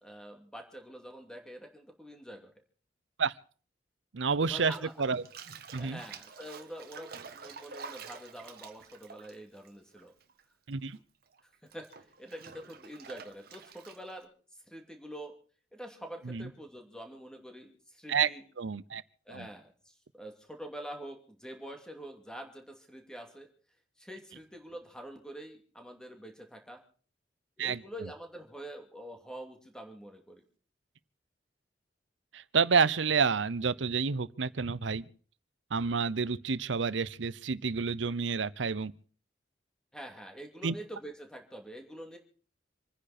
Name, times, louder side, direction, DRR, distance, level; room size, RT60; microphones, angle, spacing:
voice 1, 0.0-2.5 4.4-4.9 5.7-10.1 11.6-14.3 14.7-15.4 15.7-18.4 19.3-23.5 24.0-26.8 27.6-30.4 39.9-42.2, right 1 dB, 5° left, 2.7 m, -46 dB
voice 2, 4.1-5.2 5.7-6.0 10.7-11.0 16.2-16.5 18.1-18.3 18.6-19.0 19.3-19.5 27.6-27.8 32.3-35.0 35.7-38.9 40.6-40.7, right 5 dB, 85° right, 0.7 m, -29 dB
Bathtub (filling or washing), 4.6-10.4 10.7-14.2, right 5 dB, 55° right, 1.5 m, -49 dB
27.5 x 10.0 x 4.3 m
head